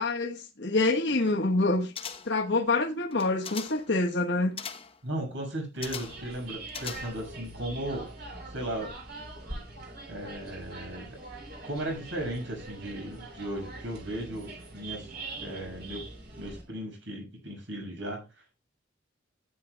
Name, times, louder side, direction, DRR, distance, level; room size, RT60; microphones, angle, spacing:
voice 1, 0.0-1.9 2.3-4.6, left 2 dB, 65° left, 1.4 m, -26 dB
sound 1, 1.9-2.5 3.1-3.9 4.6-5.0 5.8-6.3 6.7-7.4 7.7-7.8, left 7 dB, 30° left, 0.9 m, -40 dB
voice 2, 5.0-8.1 8.5-8.9 10.1-11.2 11.6-15.1 15.4-16.0 16.4-18.3, right 1 dB, 70° right, 6.3 m, -36 dB
sound 2, 5.8-16.6, right 2 dB, 55° right, 3.7 m, -43 dB
15.5 x 9.4 x 2.3 m
head